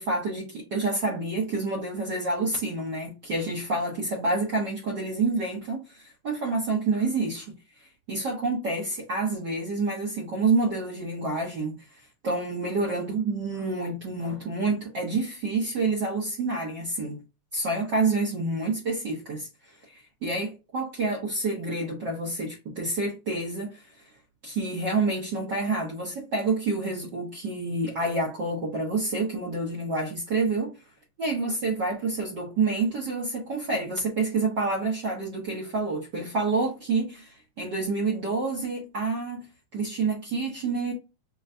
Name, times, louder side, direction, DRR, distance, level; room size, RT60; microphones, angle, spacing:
voice 1, 0.0-17.2 17.5-24.0 24.4-30.8 31.2-39.5 39.7-40.9, right 3 dB, 75° right, 1.0 m, -28 dB
6.2 x 2.1 x 2.6 m
omnidirectional pair, 3.4 m